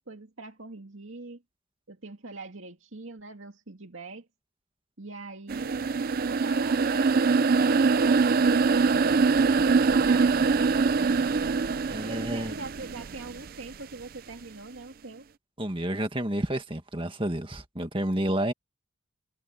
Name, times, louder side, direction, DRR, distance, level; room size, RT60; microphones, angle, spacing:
voice 1, 0.0-1.4 1.9-4.3 5.0-5.9 6.3-9.1 9.5-11.2 12.0-15.3, right 2 dB, 70° right, 2.2 m, -42 dB
sound 1, 5.5-13.5, right 4 dB, 45° right, 0.4 m, -23 dB
voice 2, 11.9-12.5 15.6-18.5, right 1 dB, 25° right, 1.9 m, -30 dB
head